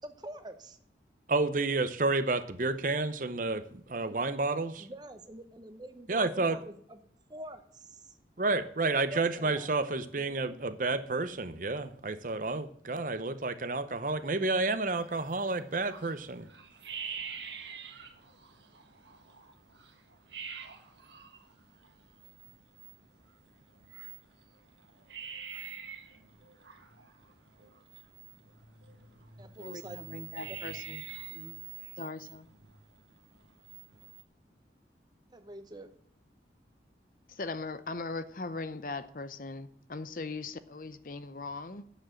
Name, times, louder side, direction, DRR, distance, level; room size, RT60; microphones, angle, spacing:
voice 1, 0.0-0.8 4.0-4.2 4.8-7.0 7.3-8.2 9.1-9.7 10.1-10.6 29.4-30.0 30.4-30.6 31.3-31.6 35.3-35.9, right 1 dB, 25° right, 1.0 m, -46 dB
voice 2, 1.3-4.9 6.1-6.6 8.4-16.5, right 3 dB, 45° right, 0.7 m, -30 dB
sound 1, 14.9-34.2, right 7 dB, 80° right, 1.5 m, -47 dB
voice 3, 29.6-31.0 32.0-32.5 37.3-41.9, left 3 dB, 50° left, 0.6 m, -39 dB
8.9 x 7.4 x 7.6 m
head